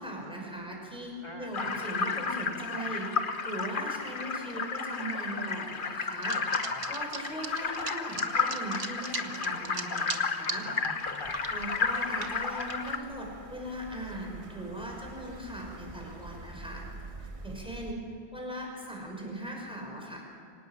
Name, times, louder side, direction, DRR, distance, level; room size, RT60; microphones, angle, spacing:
voice 1, 0.0-6.6 6.9-10.7 11.5-16.8 17.2-18.0 18.3-20.2, right 1 dB, 5° right, -1 dB, 5.9 m, -39 dB
voice 2, 1.2-1.7 6.3-6.8 10.4-11.4, left 1 dB, 25° left, 1 dB, 2.5 m, -45 dB
sound 1, 1.5-13.0, left 5 dB, 55° left, 1.2 m, -32 dB
sound 2, 6.2-10.6 11.0-12.9, right 5 dB, 60° right, 1.4 m, -39 dB
sound 3, 11.2-17.9, right 2 dB, 30° right, 1.4 m, -47 dB
25.0 x 18.5 x 7.5 m, 2.6 s
omnidirectional pair, 1.1 m